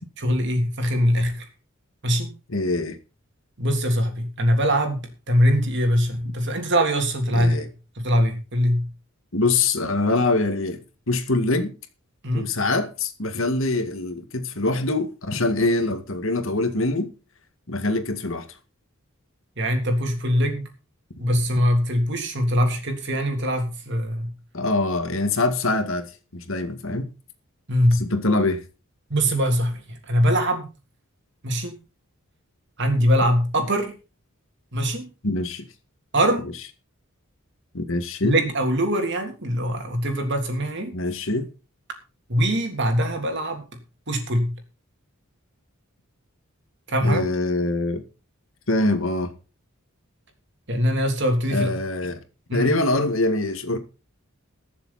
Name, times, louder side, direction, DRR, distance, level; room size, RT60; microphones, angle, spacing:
voice 1, 0.2-1.4 2.0-2.3 3.6-7.7 7.9-8.9 12.2-12.5 19.6-20.7 21.2-24.3 27.7-28.0 29.1-30.7 31.4-31.8 32.8-33.9 34.7-35.1 36.1-36.5 38.2-41.0 42.3-43.6 44.1-44.5 46.9-47.3 50.7-51.7 52.5-52.7, equal, 55° right, 3.3 m, -22 dB
voice 2, 2.5-3.0 7.3-7.7 9.3-11.7 12.3-17.1 17.7-18.5 24.5-27.1 27.9-28.6 35.2-35.7 37.7-38.4 40.9-41.5 47.0-48.0 48.7-49.3 51.5-52.2 52.5-53.8, left 2 dB, 65° left, 2.0 m, -24 dB
21.5 x 7.3 x 4.3 m
head